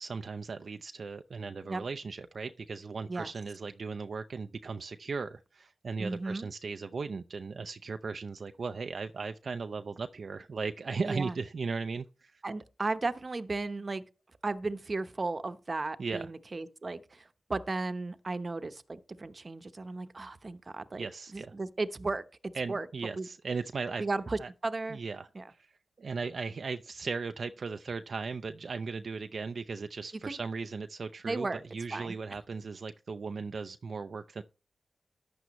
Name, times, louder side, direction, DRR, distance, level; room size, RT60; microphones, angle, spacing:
voice 1, 0.0-12.3 16.0-16.3 21.0-21.5 22.5-24.0 24.4-24.5 24.9-25.3 26.0-31.5 31.7-34.4, right 4 dB, 70° right, 0.5 m, -37 dB
voice 2, 6.0-6.5 11.0-11.4 12.4-14.0 14.4-21.1 21.3-22.9 23.2-23.3 24.0-25.0 25.3-25.5 30.2-30.4 31.2-31.6 31.9-32.4, right 3 dB, 45° right, 0.9 m, -35 dB
14.0 x 10.5 x 3.1 m
cardioid pair, 65°, 0 cm